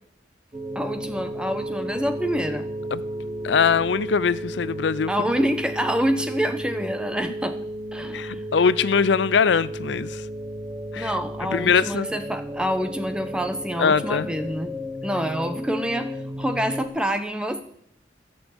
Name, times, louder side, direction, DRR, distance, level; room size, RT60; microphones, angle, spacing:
sound 1, 0.5-16.9, equal, 25° right, 1.3 m, -33 dB
voice 1, 0.7-2.7 5.1-7.6 7.9-8.4 11.0-14.7 15.0-17.6, equal, 5° right, 1.0 m, -27 dB
voice 2, 3.4-5.1 8.1-10.2 10.9-11.1 11.5-12.1 13.8-14.3, left 6 dB, 80° left, 0.5 m, -21 dB
15.0 x 7.0 x 8.0 m
head